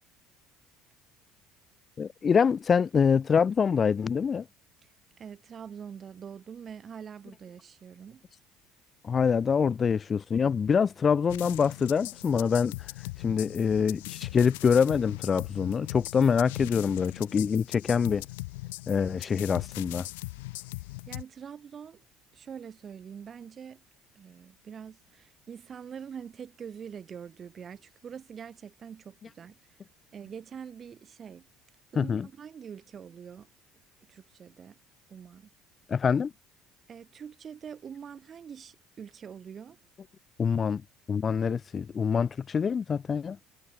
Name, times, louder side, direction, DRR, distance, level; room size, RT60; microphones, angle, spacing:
voice 1, 2.0-4.4 9.0-12.7 13.2-18.2 18.9-20.1 32.0-32.3 35.9-36.3 40.4-40.8 41.1-43.4, left 6 dB, 35° left, 1.2 m, -25 dB
voice 2, 5.2-8.2 21.1-22.0 22.3-23.8 24.1-29.6 30.1-31.5 31.9-33.5 34.1-34.7 35.1-35.5 36.9-39.8, right 7 dB, 40° right, 6.2 m, -44 dB
sound 1, 11.3-21.2, left 21 dB, 80° left, 0.9 m, -40 dB
hypercardioid pair, 70°, 0 cm